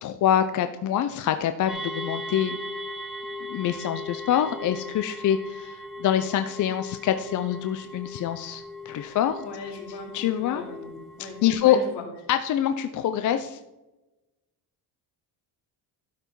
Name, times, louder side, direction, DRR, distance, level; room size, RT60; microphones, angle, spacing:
voice 1, 0.0-2.6 3.5-9.4 10.1-10.6 11.4-11.8 12.3-13.6, left 10 dB, 45° left, 9 dB, 0.5 m, -25 dB
sound 1, 1.7-11.5, left 1 dB, ahead, 1.2 m, -38 dB
voice 2, 9.4-12.0, left 4 dB, 70° left, 1 dB, 2.8 m, -38 dB
12.0 x 5.6 x 4.6 m, 1.0 s
cardioid pair, 165°, 43 cm